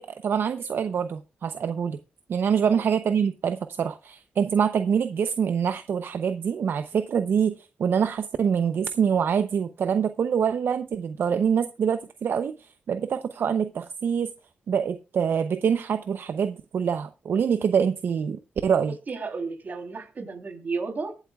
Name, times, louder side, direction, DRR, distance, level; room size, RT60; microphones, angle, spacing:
voice 1, 0.0-2.0 2.3-14.3 14.7-18.9, right 7 dB, 70° right, 0.6 m, -25 dB
voice 2, 19.1-21.1, right 4 dB, 50° right, 3.2 m, -33 dB
23.0 x 8.1 x 2.3 m
cardioid pair, 80°, 4 cm